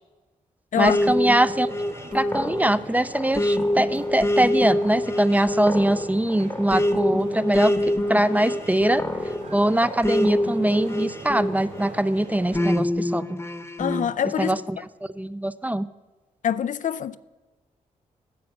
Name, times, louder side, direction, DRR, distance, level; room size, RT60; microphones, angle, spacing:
voice 1, 0.8-1.7 2.1-9.0 9.5-13.4 14.4-14.6 15.2-15.9, right 1 dB, 10° right, 0.4 m, -22 dB
sound 1, 0.9-11.9 12.5-14.1, left 1 dB, 15° left, 0.9 m, -26 dB
sound 2, 1.0-12.6, right 2 dB, 60° right, 3.0 m, -42 dB
voice 2, 13.8-14.6 16.4-17.2, left 9 dB, 60° left, 0.4 m, -25 dB
10.0 x 7.6 x 5.8 m
cardioid pair, 55°, 15 cm